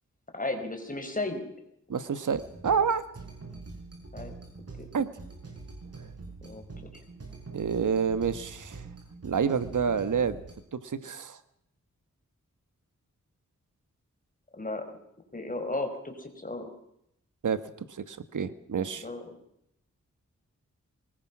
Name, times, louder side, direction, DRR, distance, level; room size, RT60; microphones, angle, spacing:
voice 1, 0.3-1.5 4.1-4.3 4.8-4.9 6.4-7.0 14.5-14.8 15.3-16.7 19.0-19.4, left 2 dB, 25° left, 5 dB, 4.8 m, -35 dB
voice 2, 1.9-3.0 4.9-5.1 7.5-8.8 9.2-10.4 10.7-11.4 17.4-17.6 17.9-19.0, right 6 dB, 90° right, 12 dB, 1.4 m, -28 dB
sound 1, 2.3-10.5, right 3 dB, 55° right, 7.3 m, -45 dB
23.5 x 20.5 x 6.1 m, 0.77 s
wide cardioid pair, 100°, 30 cm